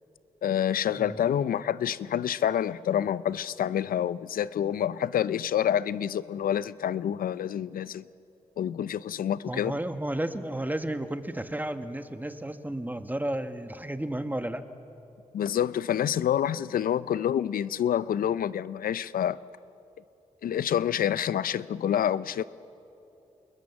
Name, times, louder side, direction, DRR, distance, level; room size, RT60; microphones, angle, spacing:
voice 1, 0.4-8.0 8.6-9.8 15.3-19.4 20.4-22.4, left 10 dB, 80° left, 18 dB, 0.5 m, -27 dB
voice 2, 9.4-14.6, right 1 dB, 10° right, 9 dB, 1.5 m, -32 dB
27.5 x 21.0 x 7.3 m, 2.9 s
cardioid pair, 50°, 15 cm